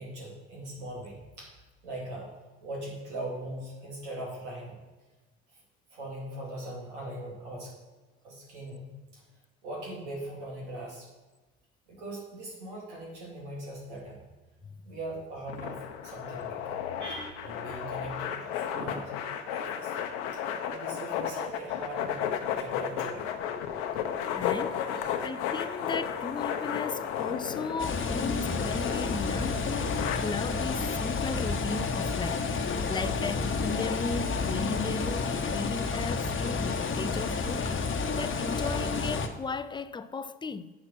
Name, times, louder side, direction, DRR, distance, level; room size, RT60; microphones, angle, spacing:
voice 1, 0.0-2.3 2.6-4.7 5.5-5.6 5.9-7.7 8.2-9.2 9.6-11.1 11.9-14.2 14.8-19.1 19.4-19.9 20.3-20.4 20.7-22.2 22.5-23.3 24.9-25.0 34.2-34.3, right 1 dB, 85° right, 2.6 m, -40 dB
sound 1, 15.5-30.2, left 9 dB, 75° left, 0.8 m, -34 dB
voice 2, 24.3-24.8 25.2-40.7, left 4 dB, 15° left, 0.4 m, -36 dB
sound 2, 27.8-39.3, left 4 dB, 35° left, 1.0 m, -30 dB
7.3 x 5.9 x 5.9 m
hypercardioid pair, 60°, 34 cm